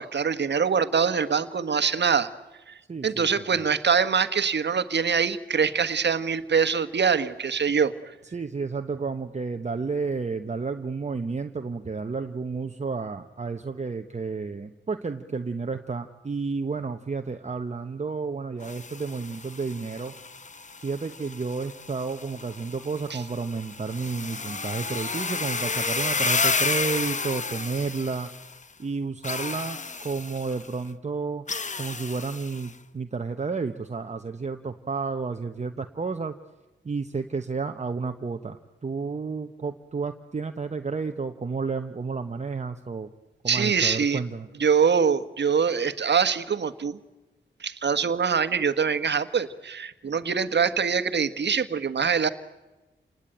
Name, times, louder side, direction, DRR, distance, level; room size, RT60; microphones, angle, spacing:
voice 1, 0.0-2.3 2.7-2.8 3.0-7.9 23.1-23.2 43.5-44.2 44.6-47.0 47.6-52.3, right 6 dB, 60° right, 11 dB, 1.4 m, -24 dB
voice 2, 2.9-3.7 8.3-20.1 20.8-28.3 28.8-31.4 31.8-36.4 36.8-43.1 43.4-44.5, right 4 dB, 35° right, 7 dB, 1.1 m, -31 dB
sound 1, 18.6-28.6 29.2-30.7 31.5-32.7, left 4 dB, 40° left, 1.1 m, -31 dB
28.5 x 19.5 x 9.2 m, 1.1 s
cardioid pair, 75°, 20 cm